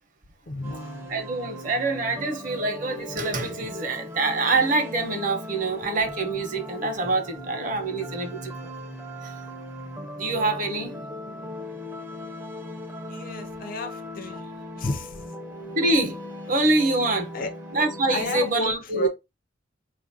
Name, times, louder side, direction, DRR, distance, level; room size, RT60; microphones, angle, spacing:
voice 1, 0.5-1.1 13.1-15.3 17.3-17.5 18.1-19.1, left 2 dB, 50° left, 0.5 m, -32 dB
sound 1, 0.6-18.5, left 1 dB, 15° right, 0.5 m, -38 dB
voice 2, 1.1-8.7 9.2-9.3 10.2-11.0 15.8-16.2 16.5-17.3 17.7-19.1, right 2 dB, 45° right, 0.8 m, -25 dB
3.9 x 2.4 x 2.6 m
head